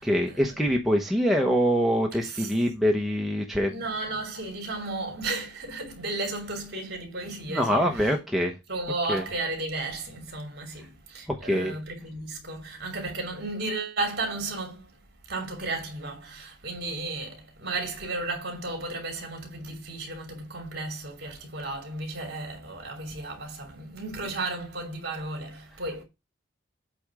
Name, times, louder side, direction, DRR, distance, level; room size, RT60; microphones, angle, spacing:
voice 1, 0.0-3.8 7.5-8.5 9.1-9.2 11.3-11.7, equal, ahead, 1.0 m, -24 dB
voice 2, 3.7-8.1 8.7-14.9 15.3-26.0, right 2 dB, 55° right, 3.0 m, -34 dB
8.4 x 3.5 x 6.1 m
head